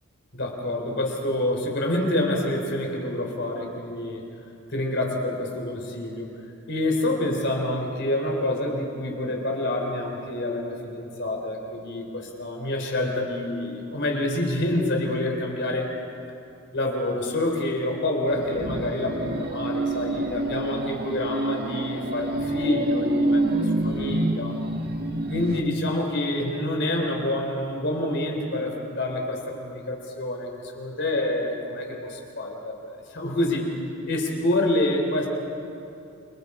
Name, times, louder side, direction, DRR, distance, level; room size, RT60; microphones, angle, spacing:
voice 1, 0.3-4.2 4.7-6.3 6.7-15.9 16.7-24.6 25.3-33.7 34.1-35.3, left 1 dB, 55° left, 1 dB, 3.7 m, -27 dB
sound 1, 18.3-25.6, right 1 dB, 45° right, 1.4 m, -27 dB
29.5 x 25.0 x 5.0 m, 2.7 s
head